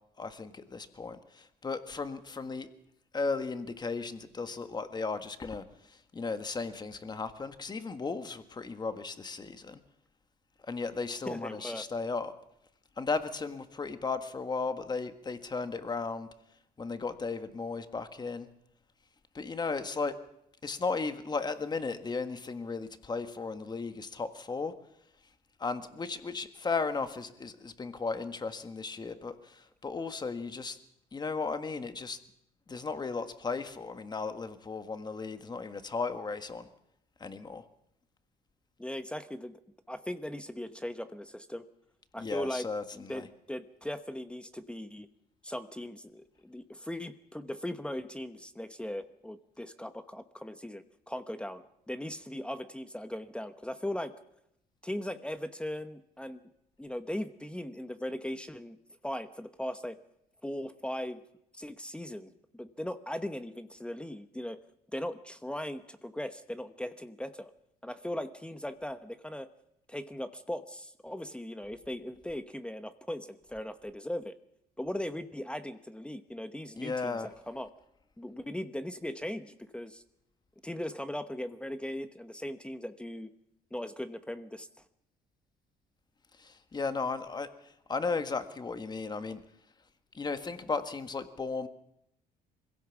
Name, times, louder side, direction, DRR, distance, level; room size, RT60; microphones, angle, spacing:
voice 1, 0.2-2.7 3.1-9.8 10.7-12.3 13.0-16.3 16.8-18.5 19.3-20.1 20.6-24.7 25.6-30.8 31.1-32.2 32.7-36.7 37.2-37.6 42.2-43.3 76.7-77.3 86.4-87.5 87.9-89.4 90.1-91.7, left 4 dB, 25° left, 9 dB, 1.6 m, -35 dB
voice 2, 11.1-11.8 38.8-39.6 39.9-41.6 42.1-42.7 42.9-45.1 45.4-54.1 54.8-56.4 56.8-58.8 59.0-60.0 60.4-61.2 61.5-64.6 64.9-67.5 67.8-69.5 69.9-74.4 74.8-77.7 78.2-80.0 80.6-83.3 83.7-84.7, left 1 dB, 5° left, 10 dB, 1.0 m, -38 dB
22.5 x 16.5 x 7.2 m, 0.79 s
cardioid pair, 110°, 17 cm